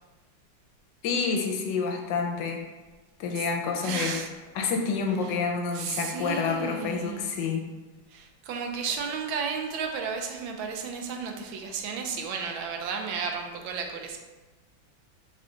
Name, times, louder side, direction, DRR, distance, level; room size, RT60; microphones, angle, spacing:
voice 1, 1.0-2.6 3.2-4.1 4.5-7.7, left 5 dB, 70° left, 3 dB, 1.2 m, -28 dB
voice 2, 3.8-4.3 5.2-5.3 5.7-7.2 8.1-14.2, right 6 dB, 80° right, 3 dB, 1.3 m, -33 dB
3.6 x 3.3 x 3.8 m, 1.2 s
omnidirectional pair, 2.2 m